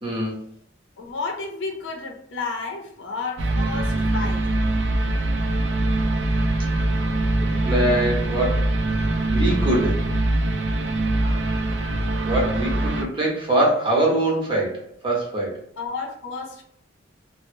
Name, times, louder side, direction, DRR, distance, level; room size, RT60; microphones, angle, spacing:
voice 1, 0.0-0.4 7.4-8.7 9.3-10.0 12.2-15.6, right 1 dB, 30° right, -3 dB, 0.9 m, -23 dB
voice 2, 1.0-4.5 11.1-11.5 15.8-16.6, left 4 dB, 70° left, 2 dB, 0.6 m, -32 dB
sound 1, 3.4-13.0, right 2 dB, 65° right, 0.4 m, -23 dB
2.8 x 2.0 x 2.6 m, 0.69 s
head